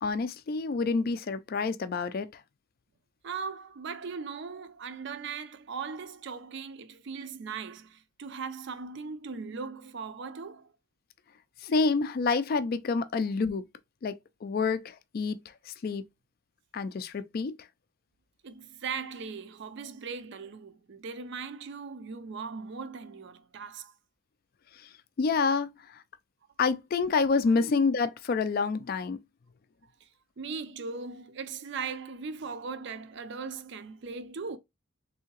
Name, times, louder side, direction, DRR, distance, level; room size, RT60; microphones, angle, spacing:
voice 1, 0.0-2.4 11.6-13.6 14.0-15.4 15.7-16.1 16.7-17.6 24.7-24.9 25.2-26.0 26.6-29.2, left 4 dB, 45° left, 0.3 m, -28 dB
voice 2, 3.2-10.7 18.4-23.9 30.0-30.1 30.4-34.6, right 5 dB, 55° right, 0.4 m, -39 dB
3.6 x 2.8 x 2.8 m
head